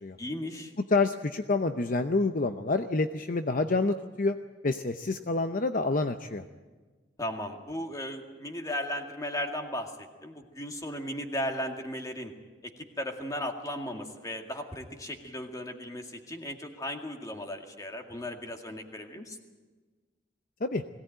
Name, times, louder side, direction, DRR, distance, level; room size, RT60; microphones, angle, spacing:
voice 1, 0.2-0.7 7.2-9.9 10.2-12.3 12.6-19.4, left 1 dB, 20° left, 3 dB, 2.1 m, -36 dB
voice 2, 0.9-4.4 4.6-6.4 20.6-20.8, left 3 dB, 50° left, 8 dB, 0.7 m, -27 dB
21.5 x 17.0 x 9.1 m, 1.3 s
head